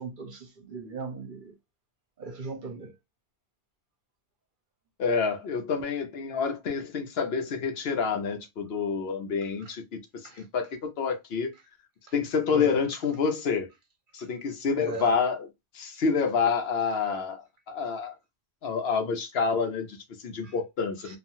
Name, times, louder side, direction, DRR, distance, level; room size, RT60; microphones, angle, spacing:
voice 1, 0.0-1.5 2.2-2.9 9.6-9.7 10.2-10.4 12.5-12.8 14.8-15.1 20.4-20.5 21.0-21.2, right 4 dB, 55° right, 0.8 m, -38 dB
voice 2, 5.0-11.5 12.1-13.7 14.1-15.5 15.7-18.1 18.6-21.2, left 5 dB, 65° left, 0.9 m, -28 dB
3.0 x 2.3 x 2.6 m
omnidirectional pair, 1.1 m